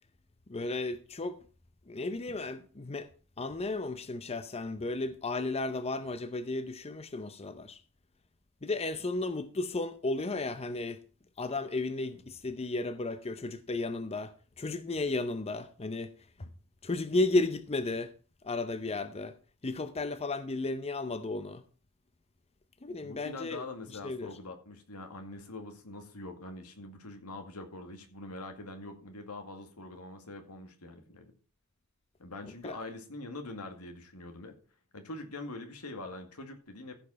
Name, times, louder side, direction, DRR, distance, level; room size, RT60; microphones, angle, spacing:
voice 1, 0.5-1.4 1.9-3.1 3.4-7.8 8.6-11.0 11.4-14.3 14.6-16.1 16.4-16.5 16.8-18.1 18.4-19.4 19.6-21.6 22.8-23.6 24.0-24.3 32.5-32.8, left 2 dB, 30° left, 0.7 m, -33 dB
voice 2, 23.0-31.3 32.2-34.5 34.9-36.9, left 2 dB, 85° left, 2.1 m, -44 dB
15.0 x 5.3 x 5.7 m
head